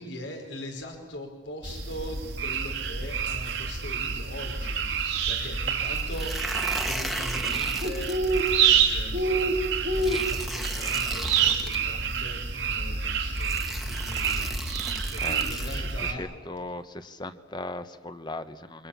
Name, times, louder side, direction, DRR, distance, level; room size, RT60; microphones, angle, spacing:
voice 1, 0.0-9.4 9.9-16.3, equal, 85° left, 3 dB, 4.8 m, -41 dB
sound 1, 1.6-16.1, right 5 dB, 75° right, 2.6 m, -27 dB
sound 2, 5.9-8.5 10.0-11.8 12.8-12.9 13.3-15.8, equal, ahead, 1.6 m, -36 dB
voice 2, 15.2-18.9, left 2 dB, 25° left, 10 dB, 1.1 m, -38 dB
28.0 x 24.5 x 7.2 m, 1.1 s
head